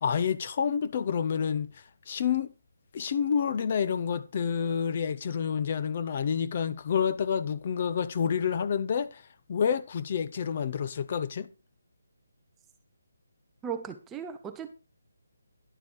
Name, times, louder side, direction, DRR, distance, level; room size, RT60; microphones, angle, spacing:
voice 1, 0.0-1.7 2.1-2.5 2.9-9.2 9.5-11.5, left 7 dB, 35° left, 0.8 m, -28 dB
voice 2, 13.6-14.7, right 7 dB, 10° right, 0.7 m, -37 dB
11.0 x 7.0 x 4.7 m
hypercardioid pair, 170°, 0 cm